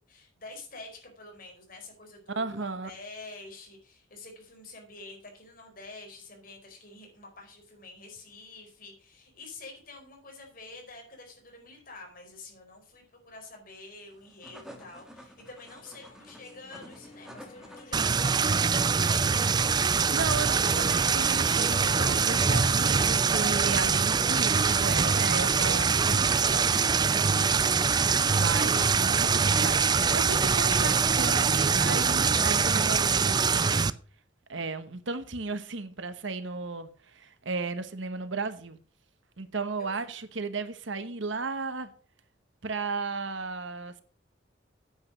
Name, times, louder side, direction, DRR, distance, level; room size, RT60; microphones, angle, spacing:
voice 1, 0.1-19.6 39.8-40.1, left 3 dB, 50° left, 4.8 m, -48 dB
voice 2, 2.3-2.9 20.1-27.6 28.3-34.0 34.5-38.8 39.4-41.9 42.6-44.0, right 3 dB, 75° right, 1.2 m, -35 dB
sound 1, 14.1-23.2, equal, 5° right, 2.2 m, -51 dB
sound 2, 15.0-20.3, left 2 dB, 35° left, 1.4 m, -50 dB
sound 3, 17.9-33.9, right 5 dB, 20° right, 0.4 m, -24 dB
9.6 x 8.2 x 6.3 m
head